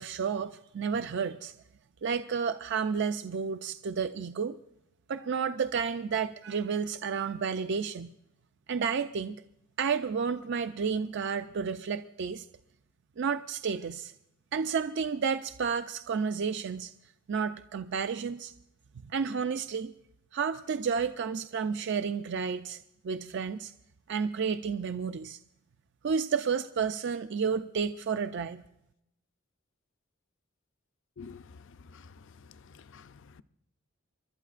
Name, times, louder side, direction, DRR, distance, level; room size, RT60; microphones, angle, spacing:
voice 1, 0.0-1.5 2.0-4.6 5.1-8.1 8.7-9.3 9.8-12.5 13.2-14.1 14.5-16.9 17.3-18.5 19.1-19.9 20.3-22.8 23.0-23.7 24.1-25.4 26.0-28.6, right 6 dB, 60° right, 0.5 m, -31 dB
voice 2, 32.7-33.4, left 5 dB, 65° left, 0.5 m, -48 dB
28.5 x 12.5 x 2.5 m
head